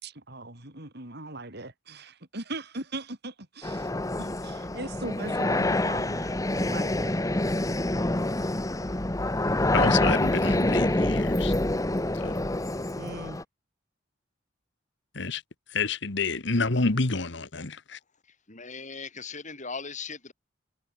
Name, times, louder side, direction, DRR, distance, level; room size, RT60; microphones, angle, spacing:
voice 1, 0.0-3.9 4.2-7.1 13.0-13.4, right 2 dB, 60° right, 5.0 m, -39 dB
sound 1, 3.6-13.4, left 1 dB, 15° left, 1.1 m, -26 dB
voice 2, 9.7-11.5 12.2-12.4 15.1-15.4 15.7-18.0, left 3 dB, 65° left, 1.6 m, -28 dB
voice 3, 18.5-20.3, left 5 dB, 40° left, 7.3 m, -38 dB
head